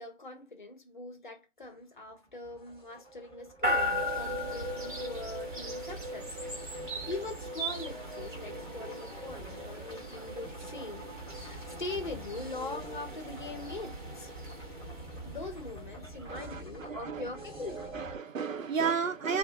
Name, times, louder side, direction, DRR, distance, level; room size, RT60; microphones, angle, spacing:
voice 1, 0.0-11.1 11.4-14.3 15.2-18.0, left 2 dB, 40° left, 0.7 m, -42 dB
sound 1, 2.1-18.2, right 1 dB, 20° right, 0.6 m, -47 dB
sound 2, 3.6-16.6, equal, 40° right, 0.9 m, -38 dB
voice 2, 16.3-17.2 17.7-19.4, right 6 dB, 80° right, 0.7 m, -33 dB
2.6 x 2.1 x 2.7 m
figure-of-eight pair, 160°, 39 cm